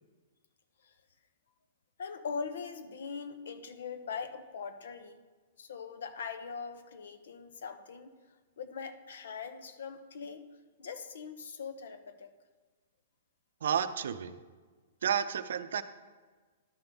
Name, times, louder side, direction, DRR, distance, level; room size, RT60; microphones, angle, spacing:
voice 1, 2.0-5.2 5.6-8.1 8.6-10.5 10.8-12.3, left 5 dB, 80° left, 10 dB, 0.7 m, -41 dB
voice 2, 13.6-14.3 15.0-15.8, right 8 dB, 80° right, 11 dB, 0.5 m, -31 dB
12.0 x 5.4 x 3.5 m, 1.4 s
hypercardioid pair, 155°, 0 cm